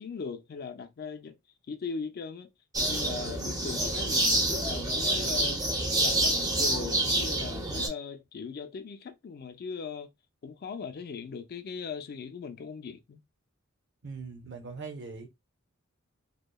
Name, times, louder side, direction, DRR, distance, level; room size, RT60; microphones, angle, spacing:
voice 1, 0.0-1.4 1.7-2.5 2.9-5.6 6.0-10.1 10.4-13.2, left 5 dB, 50° left, 0.4 m, -39 dB
sound 1, 2.7-7.9, right 1 dB, 20° right, 0.6 m, -27 dB
voice 2, 14.0-15.3, right 4 dB, 55° right, 0.7 m, -41 dB
2.8 x 2.1 x 2.2 m
head